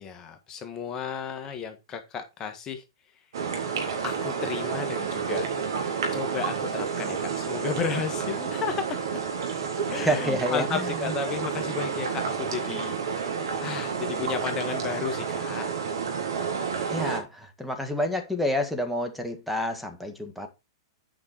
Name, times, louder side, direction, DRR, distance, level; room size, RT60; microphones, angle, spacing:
voice 1, 0.0-2.8 4.0-5.5 6.1-9.2 9.9-15.7, left 7 dB, 25° left, 1.5 m, -33 dB
sound 1, 3.3-17.2, right 6 dB, 75° right, 3.5 m, -30 dB
voice 2, 9.9-11.2 16.9-20.5, left 1 dB, ahead, 1.8 m, -29 dB
8.8 x 5.5 x 4.5 m
hypercardioid pair, 115°, 2 cm